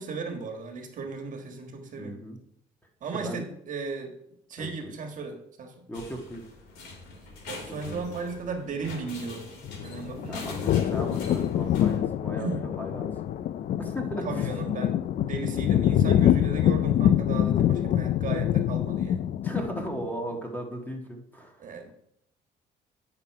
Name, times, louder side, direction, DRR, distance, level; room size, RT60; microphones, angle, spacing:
voice 1, 0.0-2.2 3.0-4.1 4.5-5.8 7.5-9.5 9.8-10.4 12.4-12.7 14.2-19.2 21.6-21.9, right 4 dB, 50° right, 3 dB, 1.5 m, -36 dB
voice 2, 2.0-2.4 3.1-3.4 4.6-4.9 5.9-6.4 7.6-8.1 10.3-13.5 13.8-14.5 19.4-21.6, right 1 dB, 10° left, 2 dB, 1.6 m, -37 dB
sound 1, 5.9-12.0, left 2 dB, 85° left, 2.4 m, -43 dB
sound 2, 9.6-20.1, left 11 dB, 50° left, 0.4 m, -25 dB
9.4 x 5.9 x 4.6 m, 0.74 s
cardioid pair, 110°, 17 cm